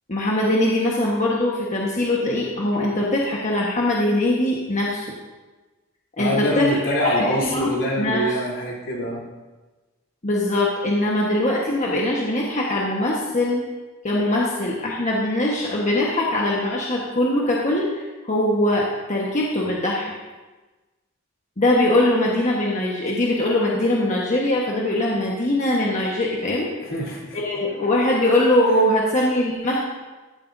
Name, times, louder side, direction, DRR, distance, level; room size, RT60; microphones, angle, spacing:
voice 1, 0.1-5.1 6.2-6.7 7.2-8.2 10.2-13.6 14.0-20.1 21.6-26.7 27.3-29.8, left 1 dB, 40° left, -3 dB, 1.3 m, -22 dB
voice 2, 6.2-9.2 26.8-27.4, equal, 70° left, -4 dB, 3.3 m, -24 dB
15.0 x 11.5 x 2.7 m, 1.2 s
head